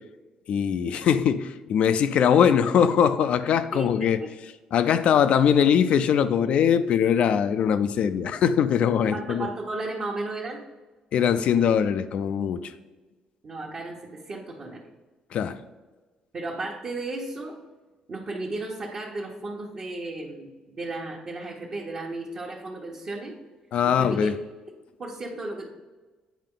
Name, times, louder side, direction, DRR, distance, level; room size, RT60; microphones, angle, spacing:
voice 1, 0.5-4.2 4.7-9.5 11.1-12.7 15.3-15.6 23.7-24.3, left 8 dB, 65° left, 0.4 m, -21 dB
voice 2, 9.1-10.6 13.4-14.8 16.3-17.6 18.1-23.3 23.8-24.3 25.0-25.7, right 2 dB, 45° right, 1.1 m, -34 dB
9.3 x 4.4 x 3.8 m
cardioid pair, 95°, 2 cm